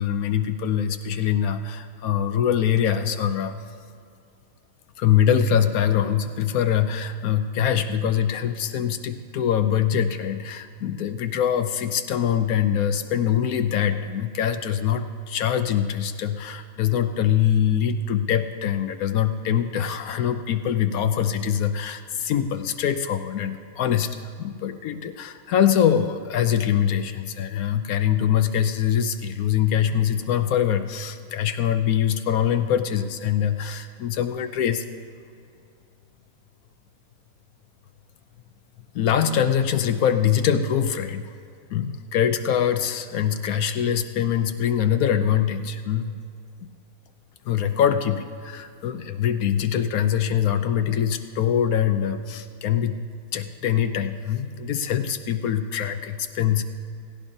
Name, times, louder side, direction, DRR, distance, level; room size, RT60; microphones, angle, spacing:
voice 1, 0.0-3.6 5.0-34.8 38.9-41.3 41.7-46.1 46.6-46.7 47.4-53.0 53.3-56.6, left 9 dB, 85° left, 8 dB, 1.1 m, -23 dB
17.0 x 17.0 x 2.7 m, 2.3 s
omnidirectional pair, 1.5 m